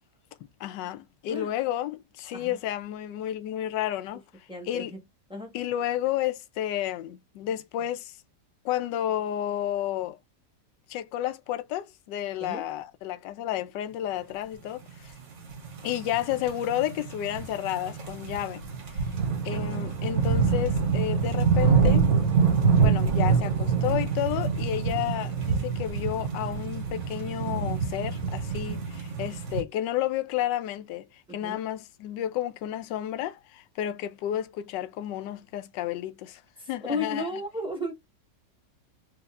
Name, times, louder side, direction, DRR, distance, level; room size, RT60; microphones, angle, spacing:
voice 1, 0.6-5.0 5.5-8.2 8.6-10.2 10.9-15.1 15.8-18.6 18.9-19.0 19.4-22.1 22.8-36.4 36.7-37.4, left 12 dB, 80° left, 1.2 m, -31 dB
voice 2, 4.5-5.0 5.3-5.5 12.4-12.6 31.3-31.6 36.6-37.9, left 2 dB, 5° right, 1.0 m, -34 dB
sound 1, 15.3-29.6, right 5 dB, 90° right, 2.3 m, -26 dB
4.7 x 2.9 x 2.4 m
omnidirectional pair, 1.9 m